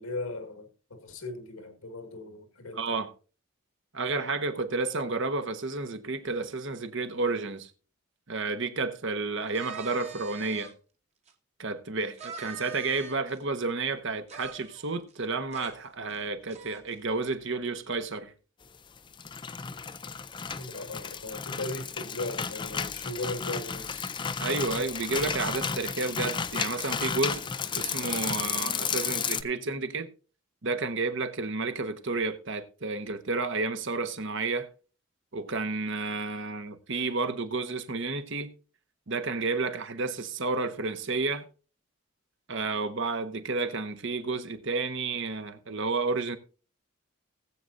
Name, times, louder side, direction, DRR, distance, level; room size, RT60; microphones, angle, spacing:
voice 1, 0.0-2.8 20.6-24.1, left 2 dB, 80° left, 1.9 m, -38 dB
voice 2, 2.7-3.1 3.9-7.7 8.3-10.7 11.6-18.3 24.4-27.4 27.7-30.1 30.6-34.7 35.3-38.5 39.1-41.4 42.5-46.4, right 3 dB, 60° right, 1.1 m, -31 dB
sound 1, 9.5-10.7 11.3-11.4 12.2-13.4 14.3-15.3 15.5-15.7 16.1-16.2 16.5-16.9, right 5 dB, 30° right, 1.2 m, -44 dB
sound 2, 19.0-29.4, left 6 dB, 20° left, 0.4 m, -33 dB
19.5 x 7.7 x 2.6 m
head